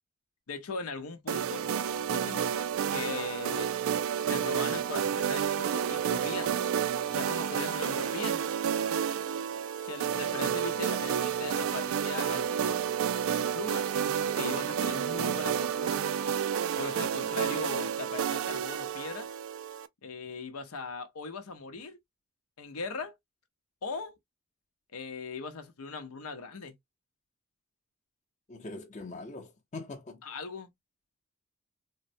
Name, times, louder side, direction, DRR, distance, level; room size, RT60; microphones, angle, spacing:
voice 1, 0.5-1.7 2.1-2.4 2.9-3.7 4.2-6.5 7.1-8.5 9.8-12.8 13.4-16.0 16.8-19.3 20.0-22.0 22.6-23.1 23.8-24.2 24.9-26.7 30.2-30.7, left 4 dB, 85° left, 0.7 m, -39 dB
sound 1, 1.3-19.9, right 8 dB, 65° right, 0.3 m, -30 dB
voice 2, 17.0-17.6 28.5-30.2, left 3 dB, 30° left, 0.7 m, -43 dB
3.7 x 2.1 x 2.5 m
head